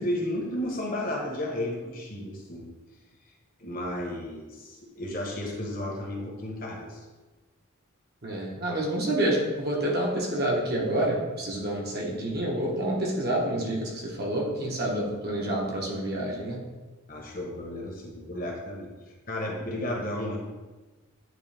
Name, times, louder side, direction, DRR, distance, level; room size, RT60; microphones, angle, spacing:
voice 1, 0.0-2.7 3.6-7.0 17.1-18.9 19.3-20.4, left 1 dB, 40° left, 0 dB, 1.1 m, -33 dB
voice 2, 8.2-16.6, right 1 dB, 45° right, -2 dB, 1.2 m, -28 dB
9.1 x 3.3 x 3.4 m, 1.2 s
head